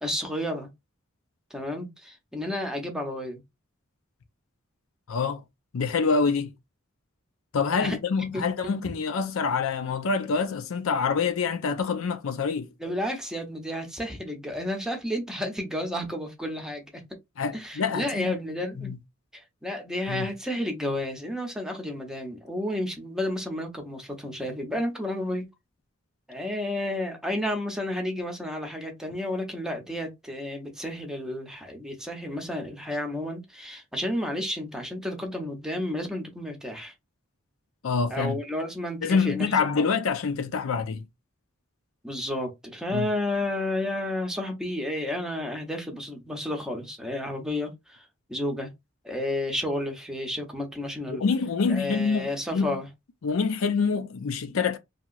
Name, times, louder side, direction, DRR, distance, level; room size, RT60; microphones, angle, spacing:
voice 1, 0.0-0.7 1.5-3.4 7.8-8.0 8.3-8.4 12.8-16.8 17.5-18.9 19.3-25.5 26.3-36.9 38.1-39.9 42.0-48.7 49.0-51.2 51.7-52.9, left 1 dB, 5° right, 0.7 m, -31 dB
voice 2, 5.1-5.4 5.7-6.5 7.5-12.7 17.4-18.3 18.8-19.0 20.1-20.3 37.8-38.4 39.0-41.0 42.9-43.1 51.1-52.8 53.2-54.8, left 5 dB, 75° left, 0.5 m, -26 dB
2.9 x 2.8 x 2.4 m
head